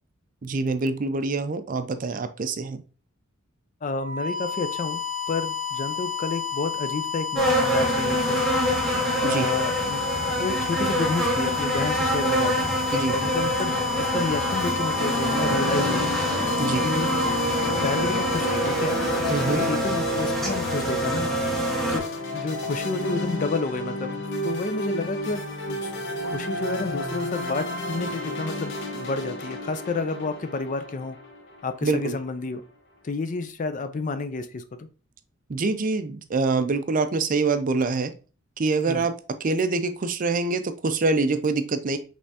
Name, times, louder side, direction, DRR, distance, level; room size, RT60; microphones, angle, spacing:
voice 1, 0.4-2.8 9.2-9.5 12.9-13.2 16.6-16.9 19.3-19.6 31.8-32.1 35.5-38.1 38.6-39.1 39.4-42.0, right 3 dB, 40° right, 9 dB, 0.5 m, -25 dB
voice 2, 3.8-8.4 9.2-10.1 10.4-12.7 13.1-13.8 14.1-16.1 16.8-17.1 17.8-21.3 21.9-22.0 22.3-25.9 26.3-31.2 31.6-32.6 33.0-34.9 38.9-39.1, left 3 dB, 40° left, 10 dB, 0.4 m, -30 dB
sound 1, 3.9-19.7, left 7 dB, 85° right, 0.8 m, -31 dB
sound 2, 7.4-22.0, right 1 dB, ahead, 1.1 m, -25 dB
sound 3, 14.6-32.0, left 2 dB, 65° left, 1.1 m, -32 dB
5.3 x 3.4 x 2.8 m, 0.36 s
head